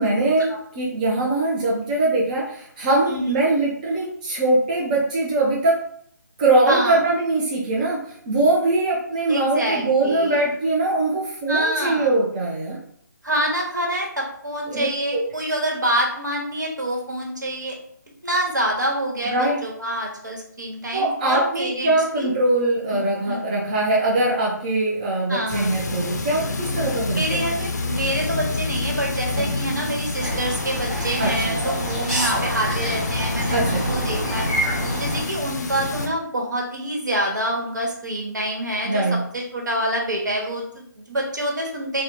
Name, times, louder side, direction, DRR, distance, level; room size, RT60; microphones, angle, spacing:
voice 1, 0.0-5.8 6.4-12.8 14.7-14.9 15.1-15.2 19.2-19.6 20.9-27.4 29.4-29.5 31.2-31.6 33.5-33.9 38.8-39.2, right 2 dB, 25° right, -4 dB, 0.4 m, -22 dB
voice 2, 6.7-7.0 9.3-10.4 11.5-12.1 13.2-17.7 18.2-22.3 22.9-23.4 25.3-25.7 27.1-34.5 35.0-39.0 39.3-42.0, right 1 dB, 70° right, -1 dB, 1.1 m, -26 dB
sound 1, 25.5-36.1, left 3 dB, 60° left, 0.5 m, -28 dB
sound 2, 30.2-35.2, right 1 dB, 5° right, 1.1 m, -27 dB
3.4 x 2.1 x 2.9 m, 0.64 s
figure-of-eight pair, 150°, 10 cm